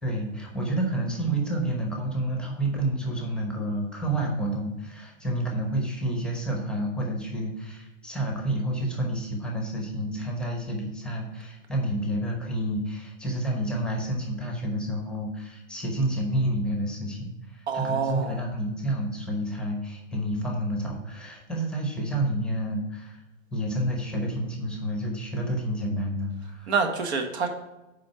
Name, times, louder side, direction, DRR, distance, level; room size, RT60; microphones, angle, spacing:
voice 1, 0.0-23.2 23.5-26.7, right 1 dB, ahead, 1 dB, 1.0 m, -29 dB
voice 2, 17.7-18.4 26.7-27.5, right 5 dB, 55° right, 4 dB, 1.5 m, -27 dB
7.6 x 5.0 x 5.8 m, 1.0 s
hypercardioid pair, 155°, 40 cm